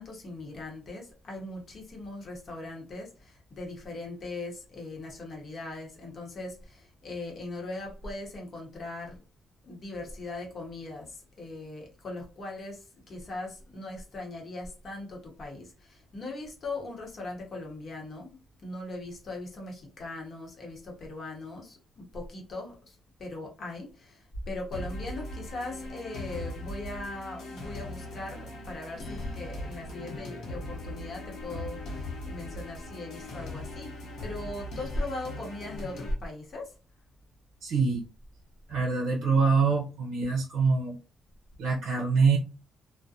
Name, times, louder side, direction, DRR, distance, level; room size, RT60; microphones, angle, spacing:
voice 1, 0.0-9.2 9.6-36.8, left 2 dB, 45° left, 0.9 m, -39 dB
sound 1, 24.7-36.1, left 1 dB, 75° left, 0.9 m, -39 dB
voice 2, 37.6-38.0 38.7-41.0 41.6-42.4, right 4 dB, 75° right, 0.6 m, -25 dB
2.4 x 2.1 x 2.7 m
cardioid pair, 130°, 0 cm